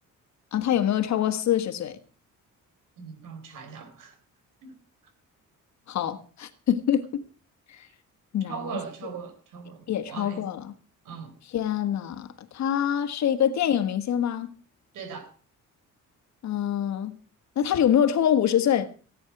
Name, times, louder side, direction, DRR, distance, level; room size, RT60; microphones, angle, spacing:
voice 1, 0.5-2.0 5.9-7.2 7.7-7.9 8.3-8.8 9.9-10.7 11.5-12.3 12.5-14.5 16.4-17.2 17.5-18.9, left 9 dB, 60° left, 1.6 m, -25 dB
voice 2, 3.0-4.1 4.6-4.7 8.4-10.4 11.1-11.3 14.9-15.3, right 6 dB, 75° right, 4.1 m, -39 dB
17.0 x 9.5 x 6.0 m
cardioid pair, 165°, 32 cm